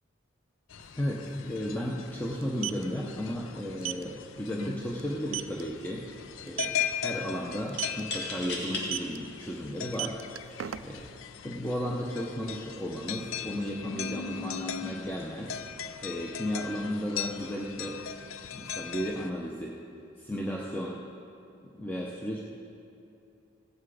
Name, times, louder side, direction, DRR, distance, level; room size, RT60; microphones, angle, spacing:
sound 1, 0.7-19.3, left 8 dB, 85° left, 0.5 m, -39 dB
sound 2, 0.8-0.9 1.1-1.3 2.4-2.8 3.8-4.0 4.5-4.6 5.0-5.1 5.3-5.6 6.5-6.8 7.7-8.0 8.9-9.2 9.8-11.1, right 13 dB, 80° right, 0.4 m, -34 dB
voice 1, 1.0-6.1 6.4-10.2 10.8-11.1 11.4-15.6 16.0-18.0 18.5-19.8 20.2-21.0 21.6-22.4, equal, 10° left, -3 dB, 0.7 m, -34 dB
sound 3, 4.6-4.8 5.2-5.8 7.7-8.9 9.6-9.7 10.6-10.9, left 3 dB, 55° left, 1.9 m, -37 dB
16.5 x 8.2 x 4.8 m, 2.6 s
head